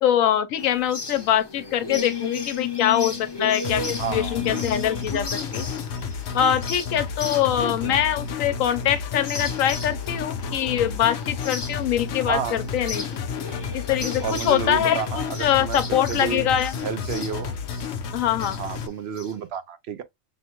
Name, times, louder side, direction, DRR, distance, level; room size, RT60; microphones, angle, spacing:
voice 1, 0.0-5.7 6.3-13.2 13.7-16.7 18.1-18.6, left 10 dB, 80° left, 1.0 m, -23 dB
sound 1, 0.6-19.3, left 4 dB, 25° left, 0.6 m, -35 dB
sound 2, 3.6-18.9, left 6 dB, 65° left, 0.8 m, -32 dB
voice 2, 4.0-4.6 7.6-8.1 12.3-12.6 14.2-16.5 16.8-17.5 18.5-20.0, right 7 dB, 60° right, 0.7 m, -31 dB
6.2 x 2.2 x 2.9 m
omnidirectional pair, 1.4 m